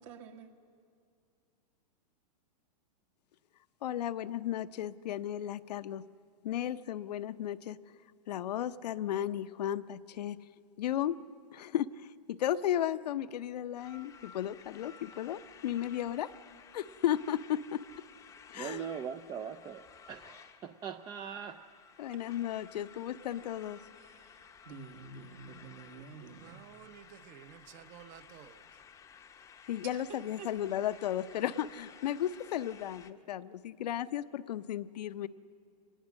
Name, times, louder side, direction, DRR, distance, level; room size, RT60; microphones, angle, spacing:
voice 1, 0.0-0.5 24.0-26.6 29.9-30.0 30.4-30.5, right 5 dB, 55° right, 1.9 m, -49 dB
voice 2, 3.8-6.0 6.4-7.8 8.3-10.4 10.8-11.2 11.5-16.3 16.7-17.8 18.5-18.8 22.0-23.8 29.7-35.3, left 11 dB, 75° left, 0.7 m, -34 dB
sound 1, 13.8-33.1, left 7 dB, 15° left, 0.7 m, -55 dB
voice 3, 18.5-21.6, right 8 dB, 20° right, 0.5 m, -41 dB
voice 4, 26.4-28.6, right 10 dB, 35° right, 0.9 m, -53 dB
26.0 x 20.0 x 6.3 m
hypercardioid pair, 140°, 21 cm